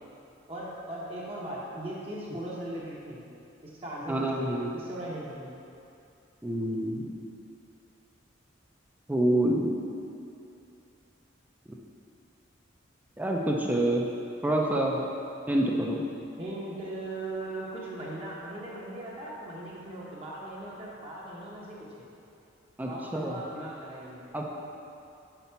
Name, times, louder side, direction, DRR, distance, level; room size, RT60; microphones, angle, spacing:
voice 1, 0.5-3.3 3.6-5.6 16.4-22.1 22.8-24.3, right 1 dB, 30° right, -6 dB, 0.8 m, -39 dB
voice 2, 4.1-4.7 6.4-7.1 9.1-9.7 13.2-14.0 14.4-15.0 15.5-16.0 22.8-23.4 24.3-24.4, right 1 dB, 10° right, -1 dB, 0.4 m, -27 dB
5.8 x 4.1 x 5.6 m, 2.7 s
head